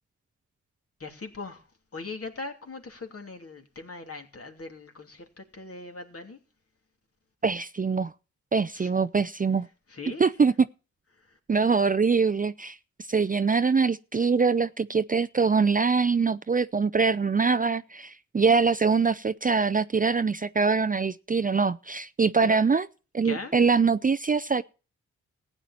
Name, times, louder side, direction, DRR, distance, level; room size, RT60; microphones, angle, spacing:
voice 1, 1.0-1.6 1.9-6.4 8.7-8.9 9.9-10.3 11.2-11.4 22.5-22.6 23.2-23.5, left 3 dB, 45° left, 2.9 m, -40 dB
voice 2, 7.4-8.1 8.5-9.7 10.2-10.7 11.5-12.8 13.1-22.9 23.1-24.6, right 5 dB, 25° right, 0.5 m, -23 dB
15.0 x 9.1 x 4.3 m
supercardioid pair, 40°, 32 cm